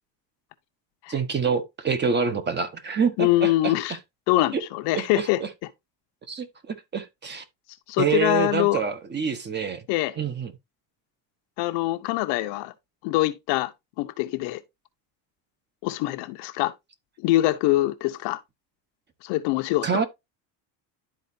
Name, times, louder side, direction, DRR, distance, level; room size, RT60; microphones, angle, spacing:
voice 1, 1.1-4.0 4.5-4.6 4.9-5.5 6.3-7.4 8.0-9.8 10.2-10.5 19.8-20.1, right 6 dB, 25° right, 1.0 m, -26 dB
voice 2, 3.2-4.0 4.3-5.4 7.9-8.8 9.9-10.1 11.6-12.7 13.0-13.7 14.0-14.6 15.8-16.7 17.2-18.4 19.2-20.0, left 17 dB, 90° left, 0.9 m, -24 dB
11.5 x 4.2 x 2.7 m
cardioid pair, 140°, 41 cm